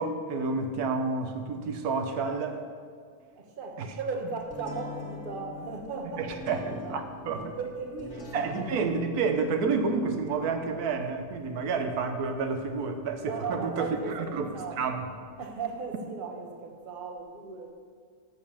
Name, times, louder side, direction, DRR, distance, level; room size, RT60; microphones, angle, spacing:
voice 1, 0.0-2.6 3.8-3.9 6.2-7.5 8.3-14.5 14.8-15.0, right 4 dB, 90° right, 6 dB, 1.3 m, -30 dB
voice 2, 3.4-7.0 7.3-8.7 13.2-14.8 15.4-17.7, right 4 dB, 40° right, 3 dB, 1.2 m, -37 dB
sound 1, 4.5-16.0, left 1 dB, 50° left, 2.0 m, -46 dB
8.5 x 6.8 x 7.0 m, 2.1 s
omnidirectional pair, 1.6 m